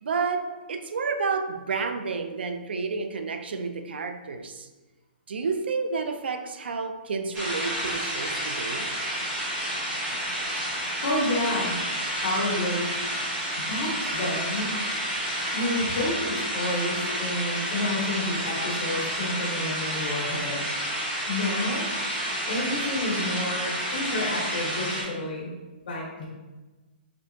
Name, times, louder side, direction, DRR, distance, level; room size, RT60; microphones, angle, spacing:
voice 1, 0.0-4.7 5.3-8.9, right 4 dB, 90° right, 0.4 m, -30 dB
sound 1, 7.3-25.0, equal, 20° right, 1.0 m, -30 dB
voice 2, 11.0-11.8 12.2-12.9 13.6-14.7 15.5-20.6 21.3-21.9 22.5-25.5 25.9-26.3, left 1 dB, 55° left, 1.4 m, -29 dB
5.2 x 2.7 x 2.8 m
hypercardioid pair, 170°, 6 cm